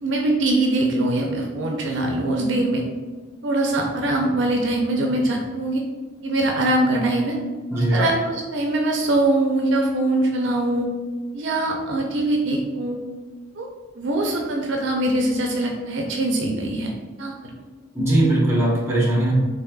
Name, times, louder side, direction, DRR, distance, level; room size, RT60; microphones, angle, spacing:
voice 1, 0.0-2.8 3.4-5.8 6.2-7.4 7.9-10.9 11.3-13.0 13.6-13.7 14.0-16.9 17.2-17.3, right 2 dB, 65° right, 1 dB, 0.4 m, -22 dB
voice 2, 7.7-8.1 17.9-19.3, right 1 dB, 15° right, -5 dB, 0.9 m, -19 dB
3.8 x 3.3 x 2.3 m, 1.4 s
head